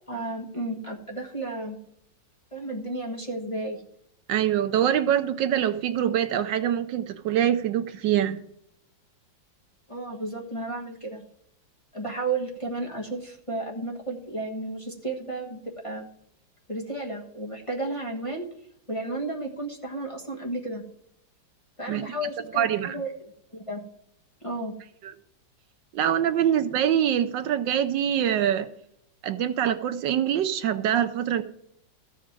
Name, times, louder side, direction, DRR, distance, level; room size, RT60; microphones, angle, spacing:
voice 1, 0.1-1.8 2.5-3.8 9.9-11.2 11.9-16.1 16.7-18.5 18.9-20.8 21.8-23.1 23.5-23.8 24.4-24.7, right 2 dB, 20° left, -1 dB, 1.3 m, -33 dB
voice 2, 4.3-8.4 21.9-22.1 22.5-23.0 25.0-25.1 25.9-28.7 29.2-31.4, right 10 dB, 75° right, 11 dB, 1.3 m, -24 dB
14.0 x 5.0 x 7.3 m, 0.74 s
omnidirectional pair, 2.1 m